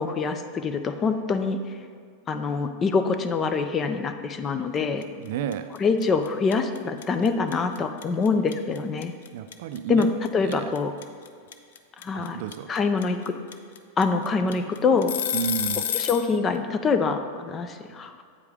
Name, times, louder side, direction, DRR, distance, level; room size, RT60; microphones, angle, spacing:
voice 1, 0.0-1.6 2.3-5.0 5.8-9.1 9.9-10.9 12.0-12.4 12.7-13.3 14.0-15.1 15.9-18.2, left 4 dB, 25° left, 8 dB, 0.4 m, -25 dB
sound 1, 5.0-5.3 5.5-16.3, left 10 dB, 85° left, 0.5 m, -30 dB
voice 2, 5.2-5.7 9.3-10.1 10.4-10.7 12.1-12.7 15.3-15.8, right 9 dB, 65° right, 10 dB, 0.4 m, -31 dB
8.2 x 4.9 x 3.6 m, 2.1 s
supercardioid pair, 140°, 0 cm